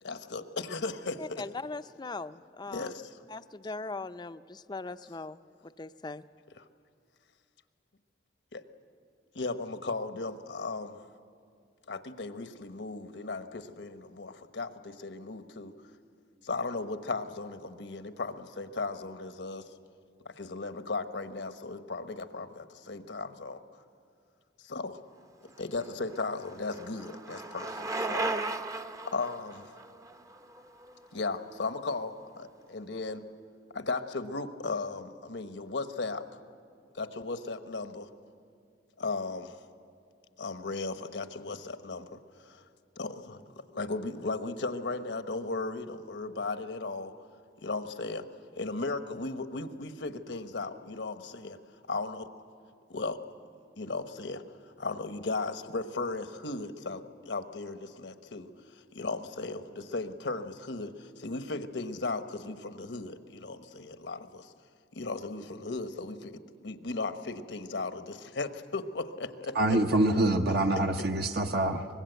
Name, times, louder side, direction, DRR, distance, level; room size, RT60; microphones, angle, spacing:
voice 1, 0.0-1.4 2.7-3.2 6.6-6.7 8.5-8.6 9.3-11.0 11.9-15.7 16.4-19.7 20.2-23.6 24.6-25.0 25.6-28.3 29.1-29.7 31.1-33.2 33.7-36.3 36.9-38.1 39.0-39.5 40.4-42.6 43.0-43.4 43.7-47.1 47.6-48.3 48.5-51.6 51.9-52.3 52.9-53.2 53.8-54.4 54.8-64.5 64.9-66.3 66.6-69.8, left 3 dB, 80° left, 1.1 m, -36 dB
voice 2, 1.2-2.9 3.3-6.2, left 3 dB, 25° left, 0.5 m, -40 dB
Bicycle, 25.6-31.6, right 2 dB, 20° right, 0.7 m, -37 dB
voice 3, 69.5-71.9, right 1 dB, 60° right, 0.9 m, -25 dB
24.0 x 20.5 x 8.0 m
head